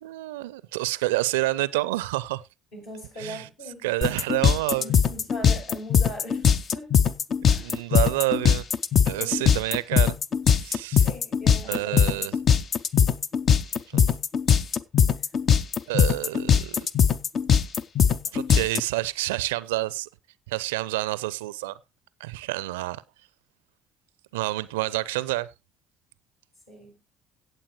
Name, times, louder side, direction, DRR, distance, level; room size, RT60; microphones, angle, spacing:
voice 1, 0.0-2.4 3.2-3.5 3.8-4.9 7.6-8.7 9.1-10.2 10.5-11.1 11.7-12.4 13.9-14.1 15.9-16.9 18.3-20.1 20.5-21.8 22.2-23.0 24.3-25.5, right 18 dB, 70° right, 0.4 m, -28 dB
voice 2, 2.7-3.8 4.8-6.9 7.5-7.8 9.1-9.4 11.0-12.3 26.7-27.0, left 1 dB, 65° left, 6.8 m, -40 dB
sound 1, 4.0-18.8, left 7 dB, 45° left, 0.6 m, -20 dB
17.5 x 7.3 x 2.9 m
figure-of-eight pair, 50°, 0 cm